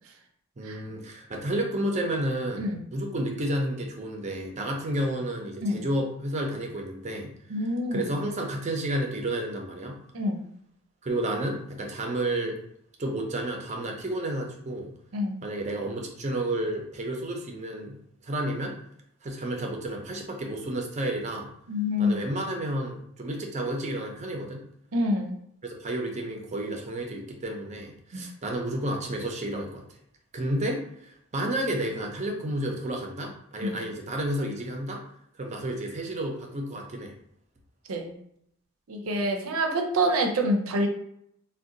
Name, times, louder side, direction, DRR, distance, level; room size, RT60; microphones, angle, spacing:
voice 1, 0.6-7.3 7.9-10.0 11.0-12.6 13.0-14.9 15.4-18.7 19.2-21.5 22.0-24.6 25.6-29.8 30.3-30.8 31.3-35.0 35.4-37.1, right 1 dB, 35° right, 1 dB, 0.5 m, -31 dB
voice 2, 7.5-8.1 10.1-10.4 15.1-15.4 21.7-22.2 24.9-25.4 28.1-28.2 33.6-33.8 37.9-38.1 38.9-40.9, equal, 85° right, 3 dB, 0.6 m, -26 dB
2.6 x 2.2 x 3.8 m, 0.72 s
head